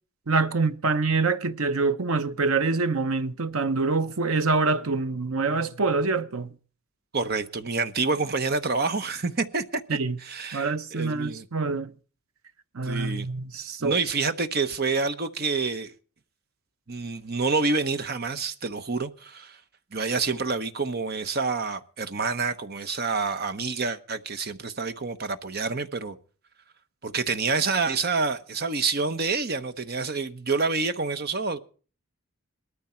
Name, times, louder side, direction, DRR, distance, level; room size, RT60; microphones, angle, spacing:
voice 1, 0.3-6.5 9.9-10.2 10.5-11.9 12.7-14.0, right 3 dB, 85° right, 0.9 m, -25 dB
voice 2, 7.1-11.5 12.8-13.3 13.8-15.9 16.9-19.6 19.9-26.2 27.0-31.6, right 4 dB, 45° right, 1.0 m, -28 dB
19.5 x 13.5 x 4.5 m
head